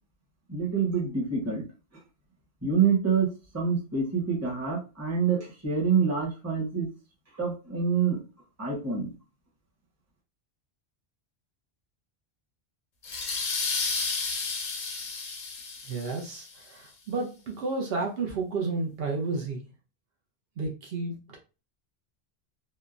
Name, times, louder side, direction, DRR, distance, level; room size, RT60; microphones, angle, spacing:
voice 1, 0.5-1.7 2.6-6.9 7.4-8.2 8.6-9.1, right 6 dB, 15° right, 0.8 m, -26 dB
sound 1, 13.0-16.5, left 4 dB, 50° left, 0.7 m, -32 dB
voice 2, 15.8-19.7 20.6-21.4, right 3 dB, 70° right, 0.8 m, -32 dB
3.0 x 2.1 x 2.4 m
omnidirectional pair, 1.1 m